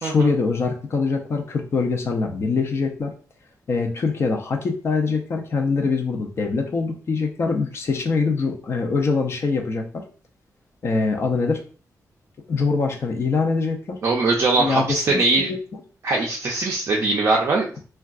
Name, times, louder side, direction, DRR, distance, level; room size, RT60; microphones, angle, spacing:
voice 1, 0.0-3.1 3.7-10.0 10.8-11.6 12.5-14.0 14.6-15.6, left 4 dB, 40° left, 2 dB, 0.5 m, -23 dB
voice 2, 14.0-15.5 16.0-17.7, right 3 dB, 45° right, -1 dB, 0.4 m, -21 dB
3.5 x 2.2 x 2.3 m, 0.40 s
wide cardioid pair, 175°, 6 cm